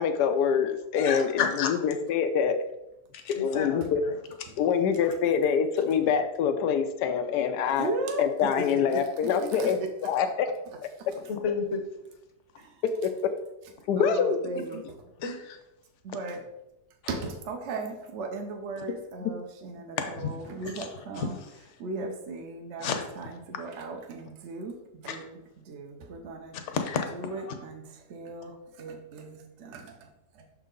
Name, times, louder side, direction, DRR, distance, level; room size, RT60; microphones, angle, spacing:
voice 1, 0.0-2.6 3.3-4.0 4.6-7.9 8.2-10.5 13.0-13.3 13.9-14.4 19.2-19.3, left 7 dB, 90° left, 8 dB, 1.2 m, -25 dB
voice 2, 1.0-1.9 3.1-4.2 11.3-11.8 15.2-15.6 17.0-17.1 18.8-18.9 20.0-20.4 20.6-21.5 22.8-23.1 25.1-25.2 26.5-27.5, left 6 dB, 55° left, 6 dB, 1.0 m, -32 dB
voice 3, 7.8-8.2 9.6-9.7 14.0-14.8 16.0-16.4 17.1-20.0 20.2-21.4 21.8-22.9 23.2-23.3 23.6-25.4 25.7-26.5 27.1-27.8 28.1-28.5 28.8-30.0, right 3 dB, 55° right, 3 dB, 0.9 m, -36 dB
6.3 x 4.6 x 3.8 m, 0.88 s
omnidirectional pair, 1.7 m